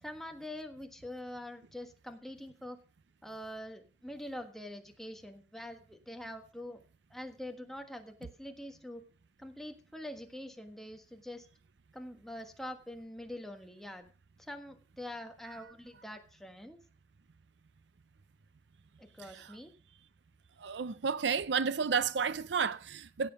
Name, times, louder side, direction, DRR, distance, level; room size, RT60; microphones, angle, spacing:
voice 1, 0.0-2.8 3.2-6.8 7.1-9.0 9.4-11.5 11.9-14.1 14.4-16.8 19.0-19.7, left 1 dB, ahead, 1.4 m, -44 dB
voice 2, 20.6-23.3, right 6 dB, 80° right, 0.6 m, -31 dB
16.5 x 7.7 x 5.2 m
head